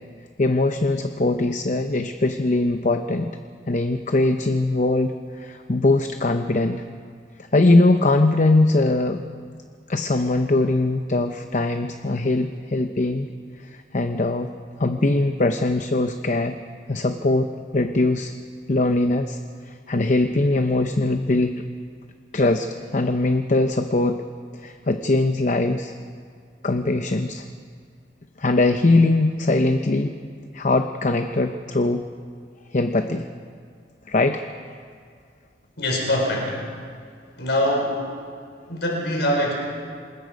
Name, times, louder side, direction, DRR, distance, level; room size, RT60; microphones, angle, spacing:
voice 1, 0.4-3.3 3.7-6.8 7.5-9.2 9.9-13.3 13.6-14.5 14.8-16.5 16.9-18.3 18.7-21.6 22.3-24.2 24.5-25.9 26.6-27.5 28.4-30.1 30.5-32.1 32.7-33.2 34.1-34.5, left 2 dB, 40° left, 7 dB, 0.7 m, -21 dB
voice 2, 35.8-36.6 37.4-38.0 38.7-39.5, left 1 dB, 70° left, 0 dB, 4.9 m, -23 dB
26.5 x 20.5 x 5.2 m, 2.1 s
head